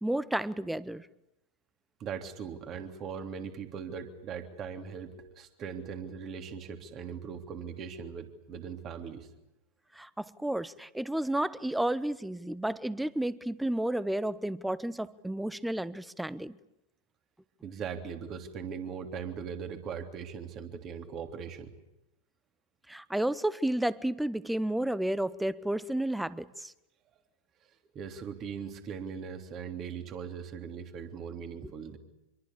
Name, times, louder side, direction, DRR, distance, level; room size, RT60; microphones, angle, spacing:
voice 1, 0.0-1.1 9.9-16.6 22.9-26.7 31.6-31.7, right 1 dB, 5° right, 1.0 m, -31 dB
voice 2, 2.0-9.3 17.6-21.7 27.9-32.0, right 6 dB, 30° right, 3.3 m, -40 dB
26.0 x 23.5 x 8.6 m
figure-of-eight pair, 90°, 0 cm